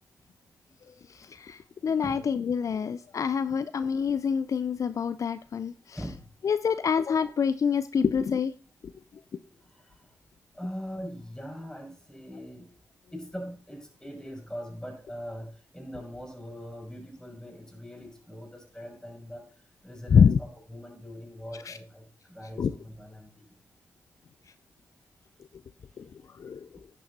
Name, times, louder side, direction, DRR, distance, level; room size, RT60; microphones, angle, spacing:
voice 1, 1.1-6.0 6.4-8.5 20.1-20.4 21.7-21.8 22.6-22.7 26.0-26.1 26.4-26.7, left 6 dB, 55° left, 13 dB, 0.4 m, -26 dB
voice 2, 10.5-12.7 13.1-19.5 19.8-20.3 20.7-23.4, equal, 5° left, 2 dB, 5.4 m, -41 dB
10.5 x 6.2 x 4.1 m, 0.39 s
supercardioid pair, 45°, 7 cm